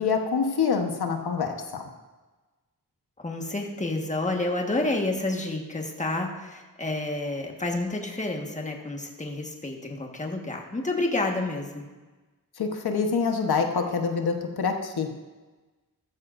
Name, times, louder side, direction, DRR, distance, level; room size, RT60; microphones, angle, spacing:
voice 1, 0.0-1.8 12.6-15.1, left 5 dB, 80° left, 4 dB, 1.2 m, -26 dB
voice 2, 3.2-11.9, left 2 dB, 20° left, 1 dB, 1.5 m, -29 dB
14.0 x 13.5 x 2.6 m, 1.2 s
wide cardioid pair, 120°, 37 cm